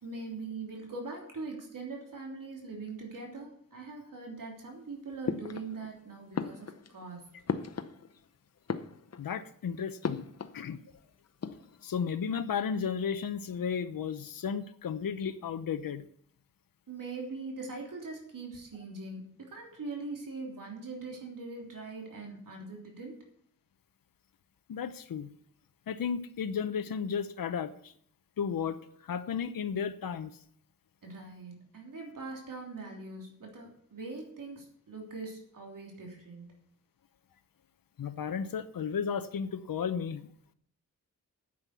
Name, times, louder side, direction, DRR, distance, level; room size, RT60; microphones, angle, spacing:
voice 1, 0.0-7.2 16.9-23.2 31.0-36.5, right 3 dB, 70° right, 0 dB, 3.3 m, -42 dB
sound 1, 5.3-6.0 6.3-8.3 8.6-9.4 10.0-10.6 10.9-11.0 11.3-12.0, left 6 dB, 50° left, 0.8 m, -37 dB
voice 2, 9.2-10.3 10.5-10.8 11.8-16.0 24.7-25.3 25.9-27.9 28.4-30.3 38.0-40.3, left 7 dB, 85° left, 10 dB, 0.9 m, -34 dB
9.6 x 7.9 x 8.2 m, 0.64 s
wide cardioid pair, 115°, 34 cm